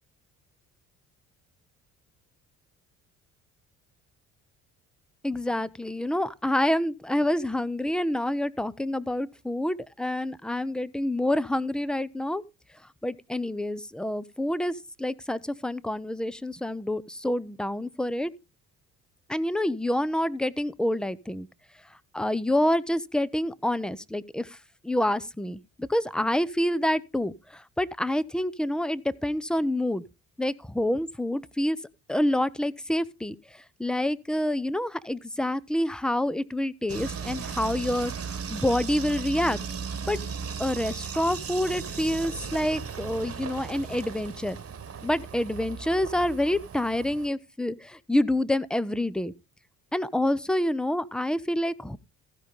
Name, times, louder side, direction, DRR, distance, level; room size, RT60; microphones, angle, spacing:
voice 1, 5.2-12.4 13.0-18.3 19.3-21.5 22.1-24.5 24.8-27.3 27.8-30.0 30.4-31.8 32.1-33.4 33.8-38.1 38.5-39.6 40.1-40.2 40.6-44.6 45.0-49.3 49.9-52.0, left 1 dB, ahead, 0.7 m, -27 dB
sound 1, 36.9-47.3, right 6 dB, 35° right, 1.4 m, -36 dB
15.5 x 5.2 x 5.3 m
hypercardioid pair, 50°, 40 cm